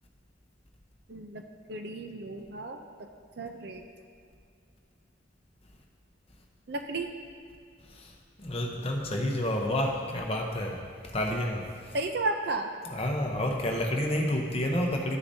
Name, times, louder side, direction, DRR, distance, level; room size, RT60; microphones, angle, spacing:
voice 1, 1.1-1.4 1.7-3.1 3.4-3.8 6.7-7.1 11.9-12.7, right 2 dB, 55° right, 4 dB, 0.5 m, -33 dB
voice 2, 8.4-10.8 11.0-11.7 12.9-15.2, left 1 dB, 30° left, 0 dB, 0.8 m, -29 dB
13.0 x 6.7 x 2.7 m, 2.3 s
head